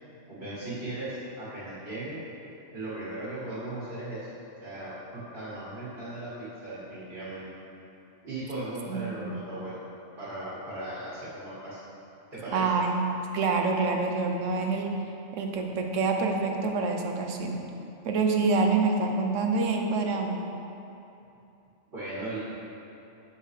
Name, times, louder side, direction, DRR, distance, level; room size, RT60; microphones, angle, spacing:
voice 1, 0.3-2.2 2.7-4.3 4.6-7.5 8.2-9.8 10.2-11.8 12.3-12.7 21.9-22.4, right 2 dB, 40° right, -10 dB, 2.1 m, -37 dB
voice 2, 8.9-9.3 12.5-13.1 13.3-14.9 15.3-17.6 18.0-20.4, right 4 dB, 75° right, 3 dB, 1.1 m, -26 dB
8.6 x 6.7 x 3.3 m, 2.8 s
omnidirectional pair, 1.3 m